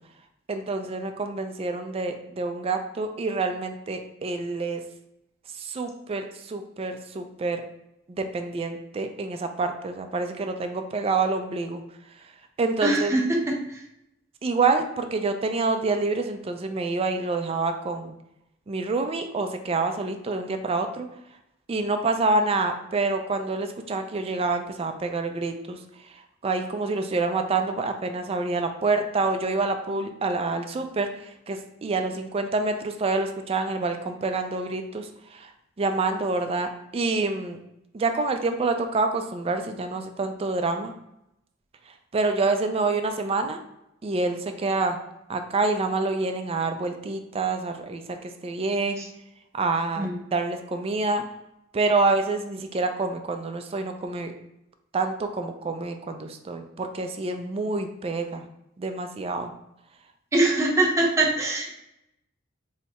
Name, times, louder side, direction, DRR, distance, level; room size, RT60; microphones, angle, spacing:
voice 1, 0.5-4.8 5.6-7.6 8.1-11.8 12.6-13.1 14.4-18.1 18.7-21.1 21.7-25.8 26.4-35.5 35.8-37.6 37.9-40.9 42.1-43.6 44.0-45.0 45.3-48.2 48.4-49.1 49.5-51.3 51.7-54.3 54.9-58.5 58.8-59.5, right 3 dB, 30° right, 6 dB, 0.3 m, -27 dB
voice 2, 12.8-13.8 49.0-49.1 50.0-50.2 60.3-61.7, right 2 dB, 15° right, -2 dB, 0.8 m, -23 dB
3.3 x 2.7 x 4.1 m, 0.85 s
head